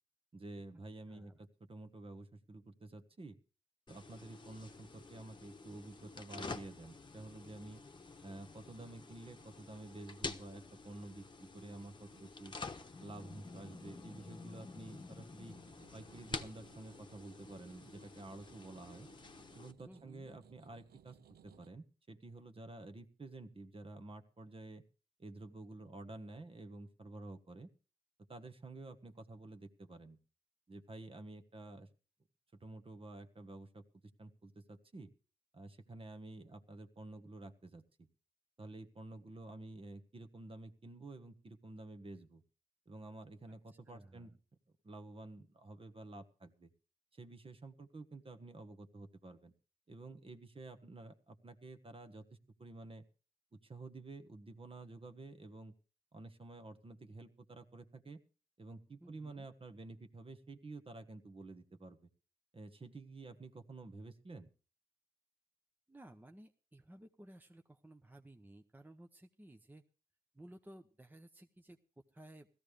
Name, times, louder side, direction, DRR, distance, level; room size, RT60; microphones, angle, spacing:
voice 1, 0.3-3.4 3.9-7.8 8.2-12.5 13.0-15.5 15.9-19.1 19.5-21.2 21.4-24.8 25.2-27.7 28.3-30.2 30.7-31.9 32.6-33.8 34.2-35.1 35.5-38.1 38.6-42.4 42.9-44.3 44.8-46.7 47.1-49.5 49.9-53.0 53.5-55.7 56.1-58.2 58.6-62.1 62.5-64.5, right 2 dB, 35° right, 8 dB, 1.4 m, -51 dB
voice 2, 1.1-1.4 19.9-20.3 43.9-44.4 59.0-59.5 65.9-69.8 70.3-71.8 72.1-72.5, right 1 dB, 10° right, 5 dB, 0.9 m, -57 dB
sound 1, 3.9-19.7, left 3 dB, 30° left, 1.1 m, -49 dB
sound 2, 15.5-21.7, right 10 dB, 85° right, 0.6 m, -64 dB
16.5 x 14.0 x 3.3 m, 0.36 s
cardioid pair, 80°, 16 cm